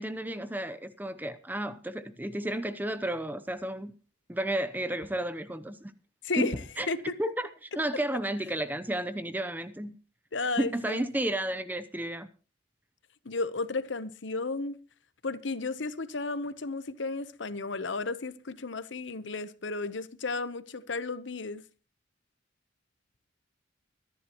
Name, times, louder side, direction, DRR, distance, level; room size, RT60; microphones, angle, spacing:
voice 1, 0.0-4.0 4.3-5.9 6.4-10.0 10.6-12.3, right 1 dB, 10° right, 0.7 m, -32 dB
voice 2, 6.2-6.6 6.9-7.2 10.3-11.0 13.2-14.8 15.2-21.6, left 3 dB, 70° left, 0.9 m, -33 dB
23.5 x 11.0 x 3.0 m
head